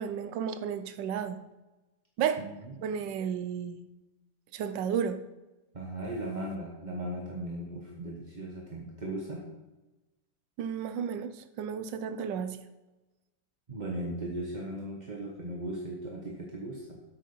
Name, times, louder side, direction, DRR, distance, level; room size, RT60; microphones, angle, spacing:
voice 1, 0.0-1.4 2.2-2.4 2.8-3.8 4.5-5.2 10.6-12.6, right 7 dB, 75° right, 10 dB, 1.3 m, -32 dB
voice 2, 5.7-9.4 13.7-17.0, right 1 dB, 30° right, -1 dB, 0.9 m, -37 dB
8.5 x 7.4 x 5.4 m, 1.1 s
omnidirectional pair, 2.1 m